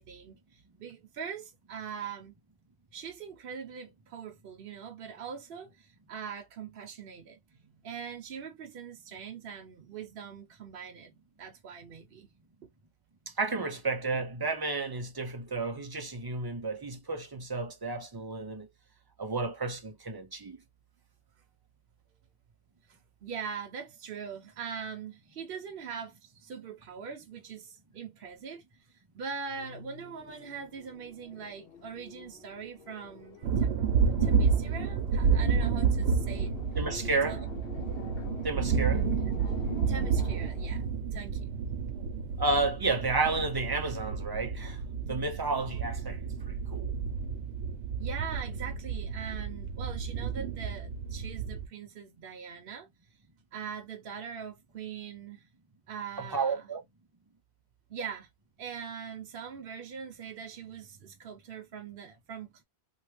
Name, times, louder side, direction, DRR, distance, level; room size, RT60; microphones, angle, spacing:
voice 1, 0.0-2.3 2.9-12.3 12.6-12.7 22.9-33.8 34.2-36.6 37.0-37.4 39.9-41.5 48.0-52.9 53.5-55.4 55.9-56.7 57.9-58.3 58.6-62.6, right 6 dB, 65° right, 0.9 m, -42 dB
voice 2, 13.3-18.7 19.2-20.6 36.7-37.4 38.4-39.1 42.4-44.8 45.1-46.9 56.2-56.8, right 3 dB, 30° right, 0.5 m, -32 dB
sound 1, 29.5-41.0, left 6 dB, 65° left, 0.9 m, -46 dB
sound 2, 33.4-51.7, right 6 dB, 90° right, 1.0 m, -30 dB
3.1 x 2.3 x 3.1 m
omnidirectional pair, 1.1 m